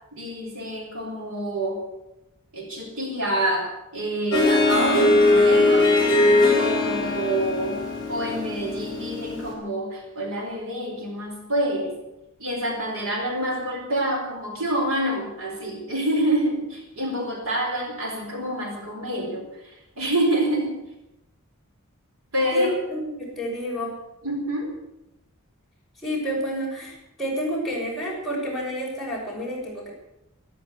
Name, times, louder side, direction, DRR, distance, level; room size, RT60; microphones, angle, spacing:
voice 1, 0.1-1.8 2.5-5.9 6.5-7.8 8.1-12.0 12.4-20.8 22.3-22.7 24.2-24.7, right 1 dB, 70° right, 1 dB, 4.2 m, -27 dB
Harp, 4.3-9.5, left 2 dB, 20° left, 4.8 m, -20 dB
voice 2, 22.5-24.0 26.0-29.9, equal, ahead, -5 dB, 6.7 m, -29 dB
13.5 x 13.0 x 8.2 m, 0.90 s
head